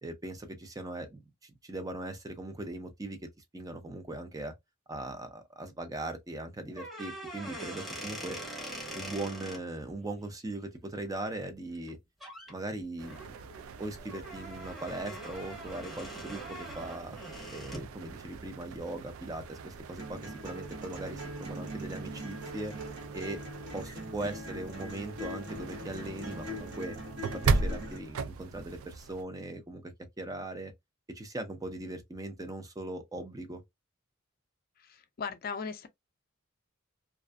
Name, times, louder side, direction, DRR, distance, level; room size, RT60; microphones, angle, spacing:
voice 1, 0.0-3.2 3.5-4.5 4.9-8.4 8.9-12.0 12.5-13.2 13.8-17.2 17.5-22.7 23.1-23.4 23.7-26.9 27.3-30.7 31.1-33.6, right 2 dB, 15° right, 0.5 m, -39 dB
sound 1, 6.7-9.6 11.8-11.9 12.2-12.5 13.0-17.9, right 1 dB, ahead, 0.8 m, -43 dB
sound 2, 13.0-29.2, right 4 dB, 75° right, 0.4 m, -38 dB
sound 3, 20.0-28.0, equal, 60° right, 1.2 m, -42 dB
voice 2, 34.8-35.9, left 5 dB, 45° left, 0.4 m, -38 dB
2.5 x 2.3 x 2.3 m
head